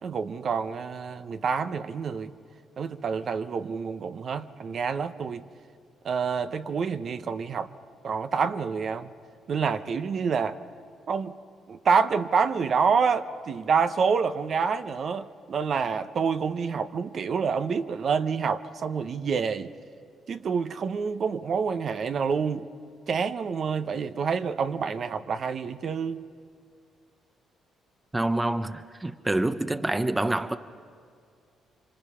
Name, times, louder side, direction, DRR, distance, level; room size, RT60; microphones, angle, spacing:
voice 1, 0.0-2.3 2.8-5.4 6.0-7.7 8.0-9.1 9.5-10.6 11.1-11.4 11.7-19.7 20.3-22.7 23.1-26.2, right 6 dB, 55° right, 0.8 m, -27 dB
voice 2, 28.1-30.6, right 2 dB, 15° right, 0.7 m, -27 dB
28.0 x 25.0 x 5.7 m
cardioid pair, 90°, 0 cm